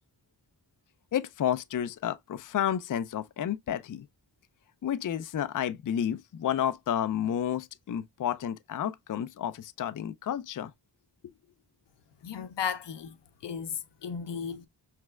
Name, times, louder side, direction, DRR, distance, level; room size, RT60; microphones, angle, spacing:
voice 1, 1.1-4.1 4.8-10.7, left 10 dB, 50° left, 0.5 m, -31 dB
voice 2, 12.2-13.2 13.4-14.7, left 7 dB, 80° left, 0.7 m, -35 dB
5.9 x 3.2 x 2.3 m
wide cardioid pair, 70°, 42 cm